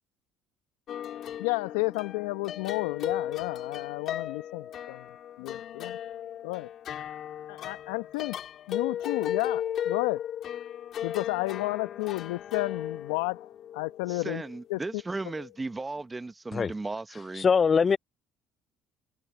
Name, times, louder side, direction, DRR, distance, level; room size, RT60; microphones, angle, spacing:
sound 1, 0.9-14.6, left 10 dB, 55° left, 2.2 m, -36 dB
voice 1, 1.4-5.1 5.4-6.0 6.4-6.7 7.5-8.4 8.7-10.2 11.0-13.5 13.7-14.4 14.7-15.0, left 23 dB, 80° left, 1.2 m, -32 dB
voice 2, 14.1-17.5, right 3 dB, 20° right, 1.3 m, -36 dB
voice 3, 17.3-18.0, left 6 dB, 40° left, 0.5 m, -22 dB
hypercardioid pair, 65°, 0 cm